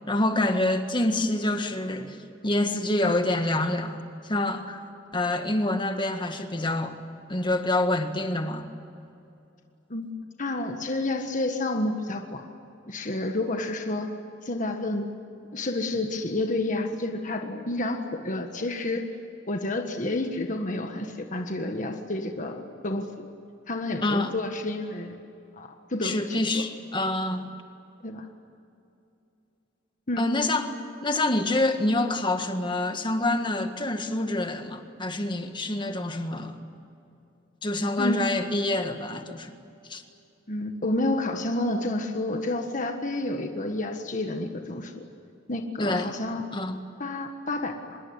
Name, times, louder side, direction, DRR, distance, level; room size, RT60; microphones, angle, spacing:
voice 1, 0.1-4.0 4.2-4.8 5.1-7.0 7.3-8.7 24.0-24.4 26.0-27.5 30.2-30.8 31.0-36.6 37.6-39.5 39.9-40.0 45.8-46.1 46.5-46.8, left 2 dB, 25° left, 7 dB, 1.8 m, -26 dB
voice 2, 10.4-12.5 12.9-14.1 14.4-15.1 15.5-19.0 19.5-23.3 23.7-25.1 25.6-26.6 28.0-28.3 30.1-30.2 38.0-38.2 40.5-45.0 45.5-46.4 47.0-48.0, left 2 dB, 40° left, 4 dB, 1.5 m, -30 dB
25.5 x 21.0 x 9.7 m, 2.7 s
head